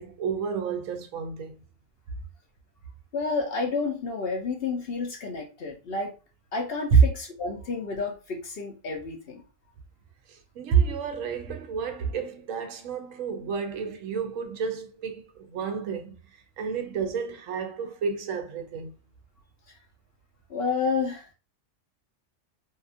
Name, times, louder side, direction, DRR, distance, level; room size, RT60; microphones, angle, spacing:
voice 1, 0.0-1.5 10.3-16.2 16.6-18.9, right 6 dB, 80° right, 1.0 m, -31 dB
voice 2, 3.1-6.2 6.5-9.4 20.5-21.3, left 4 dB, 55° left, 0.8 m, -30 dB
2.8 x 2.4 x 2.4 m
omnidirectional pair, 1.4 m